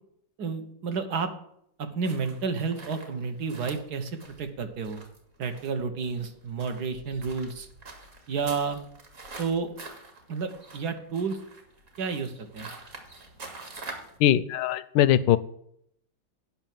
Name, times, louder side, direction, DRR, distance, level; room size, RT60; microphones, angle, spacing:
voice 1, 0.4-1.3 1.8-5.0 5.4-7.7 8.3-8.8 9.4-9.7 10.3-11.4 12.0-12.7, right 5 dB, 60° right, 7 dB, 1.6 m, -31 dB
sound 1, 2.0-14.2, right 3 dB, 40° right, 2.1 m, -46 dB
voice 2, 14.2-15.4, left 11 dB, 75° left, 16 dB, 1.2 m, -21 dB
8.8 x 5.9 x 7.5 m, 0.71 s
omnidirectional pair, 2.1 m